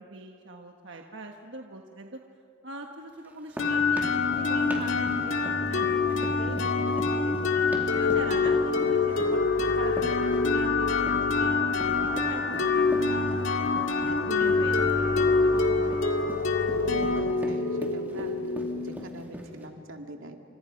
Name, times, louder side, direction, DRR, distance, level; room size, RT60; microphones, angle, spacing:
voice 1, 0.1-2.2 2.6-7.3 7.9-12.4 12.7-13.9 14.3-16.0 18.1-18.3, right 2 dB, 65° right, 2 dB, 1.3 m, -42 dB
sound 1, 3.2-19.7, equal, 10° right, 2.8 m, -41 dB
sound 2, 3.6-19.2, left 4 dB, 80° left, 2.0 m, -25 dB
voice 2, 16.8-20.4, right 1 dB, 90° right, 3 dB, 2.2 m, -43 dB
30.0 x 26.5 x 5.3 m, 2.5 s
head